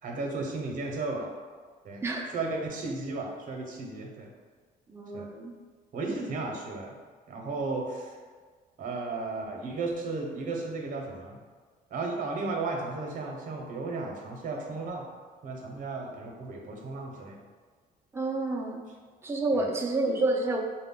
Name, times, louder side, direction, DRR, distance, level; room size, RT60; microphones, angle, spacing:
voice 1, 0.0-1.3 1.8-2.0 2.3-4.3 5.1-5.3 5.9-6.9 7.3-8.2 8.8-11.4 11.9-15.1 15.4-17.4 19.5-19.7, right 3 dB, 50° right, 1 dB, 0.9 m, -34 dB
voice 2, 2.0-2.3 4.9-5.5 18.1-18.8 19.2-20.6, right 2 dB, 15° right, 0 dB, 0.5 m, -29 dB
4.8 x 2.2 x 3.7 m, 1.5 s
cardioid pair, 110°, 17 cm